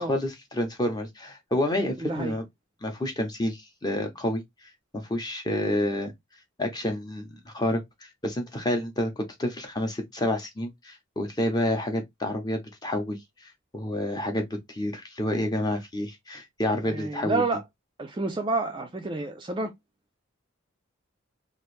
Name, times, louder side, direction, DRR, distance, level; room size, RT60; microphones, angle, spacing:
voice 1, 0.0-2.4 2.8-4.4 4.9-6.1 6.6-7.8 8.2-13.2 13.7-17.4, left 1 dB, 20° left, 0.8 m, -29 dB
voice 2, 2.0-2.3 16.8-17.6 18.0-19.7, right 3 dB, 25° right, 0.4 m, -29 dB
3.0 x 2.5 x 3.2 m
head